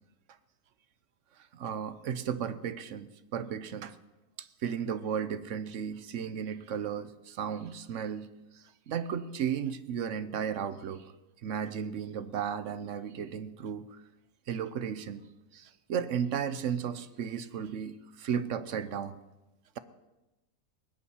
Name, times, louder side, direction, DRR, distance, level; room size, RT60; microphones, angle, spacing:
voice 1, 1.5-4.0 4.4-8.3 8.5-11.1 11.4-14.0 14.5-15.2 15.5-19.1, right 8 dB, 55° right, 13 dB, 1.0 m, -34 dB
19.5 x 7.2 x 9.9 m, 1.0 s
omnidirectional pair, 1.7 m